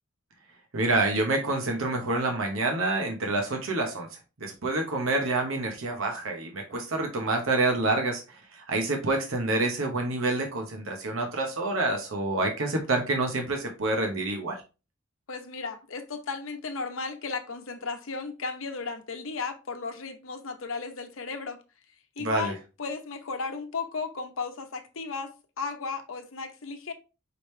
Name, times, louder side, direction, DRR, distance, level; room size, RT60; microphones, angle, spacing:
voice 1, 0.7-4.1 4.4-14.6 22.2-22.5, right 2 dB, 75° right, 0.9 m, -27 dB
voice 2, 15.3-21.6 22.2-26.9, left 4 dB, 70° left, 0.8 m, -35 dB
4.9 x 3.3 x 3.2 m
head